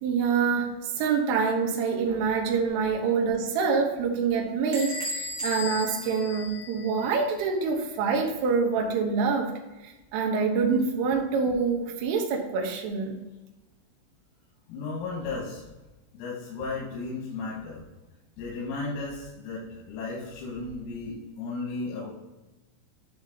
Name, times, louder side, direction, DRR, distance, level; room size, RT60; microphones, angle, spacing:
voice 1, 0.0-9.6 9.8-13.2, right 5 dB, 75° right, 1 dB, 3.5 m, -26 dB
Bell / Door, 4.7-7.2, left 1 dB, 60° right, 2.8 m, -35 dB
voice 2, 14.7-15.7 16.1-17.9 18.4-22.1, left 3 dB, 85° left, -5 dB, 4.3 m, -34 dB
10.5 x 3.9 x 3.9 m, 1.1 s
omnidirectional pair, 6.0 m